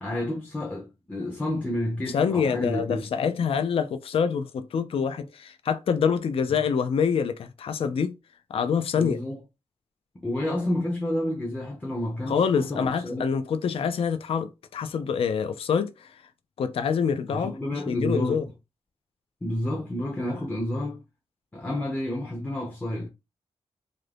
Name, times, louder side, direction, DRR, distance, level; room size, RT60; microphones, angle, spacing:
voice 1, 0.0-3.0 8.9-9.4 10.1-13.2 17.3-18.4 19.4-21.0 21.5-23.1, left 1 dB, 15° left, 0.6 m, -30 dB
voice 2, 2.1-8.1 8.5-9.2 12.3-16.2 16.6-18.4, left 6 dB, 60° left, 0.4 m, -26 dB
2.6 x 2.5 x 3.3 m
wide cardioid pair, 175°, 11 cm